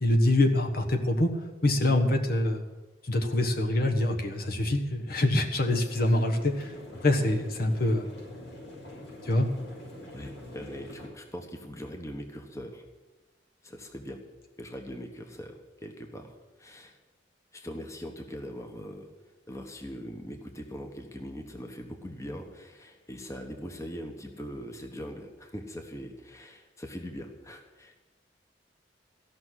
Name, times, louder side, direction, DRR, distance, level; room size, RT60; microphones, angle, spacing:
voice 1, 0.0-1.3 1.6-2.6 3.0-6.7 7.0-8.1 9.2-9.5, left 1 dB, 55° left, 4 dB, 1.3 m, -25 dB
sound 1, 5.9-11.1, left 1 dB, 70° left, 6.0 m, -45 dB
voice 2, 10.1-12.8 13.6-14.2 14.6-16.3 16.6-17.0 17.5-19.1 19.5-28.0, equal, 15° left, 4 dB, 1.2 m, -41 dB
15.0 x 6.2 x 9.9 m, 1.2 s
head